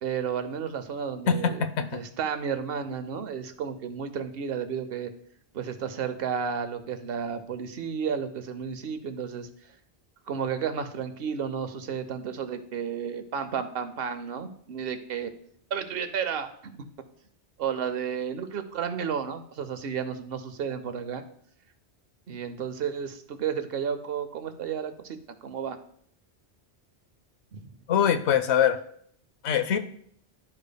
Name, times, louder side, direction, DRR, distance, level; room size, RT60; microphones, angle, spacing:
voice 1, 0.0-5.1 5.5-9.5 10.3-15.3 15.7-16.8 17.6-21.2 22.3-25.8 27.5-27.7, right 7 dB, 65° right, 9 dB, 0.8 m, -32 dB
voice 2, 1.3-2.0 27.9-28.8 29.4-29.8, left 8 dB, 80° left, 9 dB, 0.9 m, -23 dB
11.5 x 5.1 x 2.2 m, 0.64 s
omnidirectional pair, 1.2 m